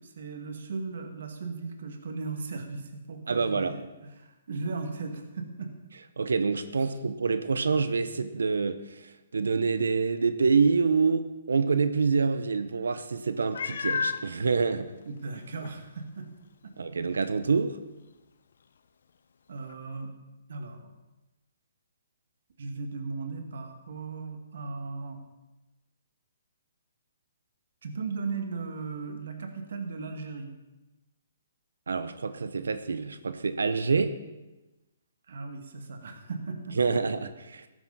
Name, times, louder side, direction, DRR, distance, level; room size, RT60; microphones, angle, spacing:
voice 1, 0.0-5.7 6.8-7.0 15.1-16.3 16.6-16.7 19.5-20.1 20.5-20.9 22.6-25.2 27.8-30.5 35.3-37.0, right 4 dB, 70° right, 5 dB, 2.1 m, -37 dB
voice 2, 3.3-3.8 6.2-14.9 16.8-17.8 31.9-34.1 36.8-37.7, right 4 dB, 85° right, 12 dB, 0.8 m, -26 dB
Meow, 13.5-14.2 15.0-15.1 15.6-15.7 19.7-19.8, left 6 dB, 70° left, 0.8 m, -30 dB
14.0 x 12.0 x 4.2 m, 1.0 s
hypercardioid pair, 145°, 0 cm